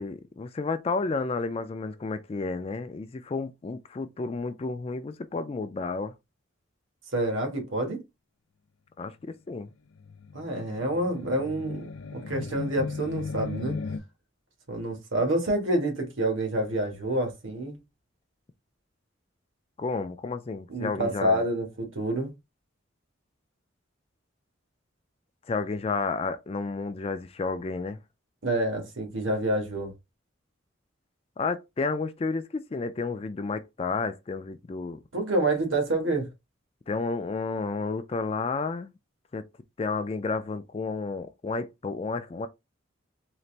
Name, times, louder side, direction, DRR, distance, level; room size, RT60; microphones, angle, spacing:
voice 1, 0.0-6.1 9.0-9.7 19.8-21.4 25.5-28.0 31.4-35.0 36.9-38.9 39.3-39.4 39.8-42.5, left 4 dB, 30° left, 0.3 m, -31 dB
voice 2, 7.1-8.0 10.3-13.8 14.7-17.8 20.7-22.3 28.4-29.9 35.1-36.3, right 1 dB, 75° right, 1.5 m, -28 dB
sound 1, 10.0-14.0, left 4 dB, 85° left, 0.5 m, -36 dB
4.0 x 2.5 x 3.2 m
head